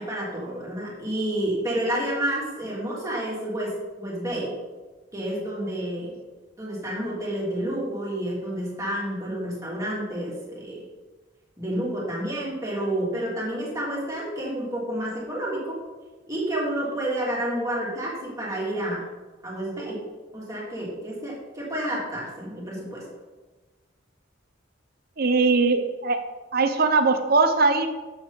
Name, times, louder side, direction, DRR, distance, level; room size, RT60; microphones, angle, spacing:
voice 1, 0.0-3.7 4.0-4.5 5.1-6.1 6.6-10.8 11.6-15.8 16.3-19.0 19.4-20.0 20.3-23.0, right 1 dB, 15° right, -5 dB, 3.0 m, -29 dB
voice 2, 25.2-26.2 26.5-27.9, right 3 dB, 50° right, 8 dB, 0.7 m, -20 dB
12.0 x 7.6 x 4.1 m, 1.2 s
head